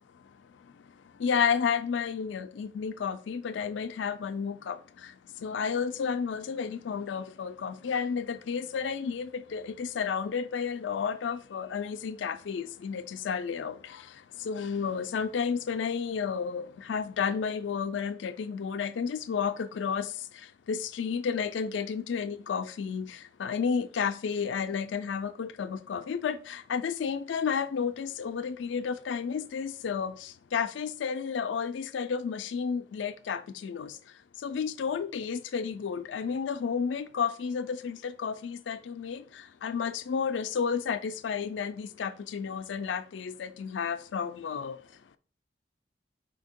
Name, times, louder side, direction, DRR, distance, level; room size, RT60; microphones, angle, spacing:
voice 1, 1.2-4.8 5.4-13.7 14.5-20.1 20.7-23.1 23.4-30.1 30.5-33.9 34.4-39.2 39.6-44.8, left 6 dB, 85° left, 0.4 m, -31 dB
4.4 x 2.8 x 4.3 m
head